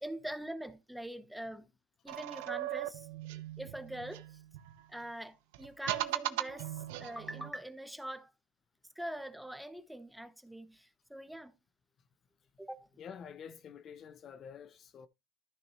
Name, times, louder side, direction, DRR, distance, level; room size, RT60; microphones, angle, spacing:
voice 1, 0.0-1.7 2.0-4.4 4.9-8.3 9.0-11.6 12.6-12.9, right 1 dB, ahead, 0.9 m, -43 dB
sound 1, 2.1-4.8 5.5-7.5, right 15 dB, 80° right, 0.9 m, -38 dB
voice 2, 13.0-15.1, left 7 dB, 35° left, 0.6 m, -48 dB
13.5 x 6.0 x 3.1 m
cardioid pair, 140°, 0 cm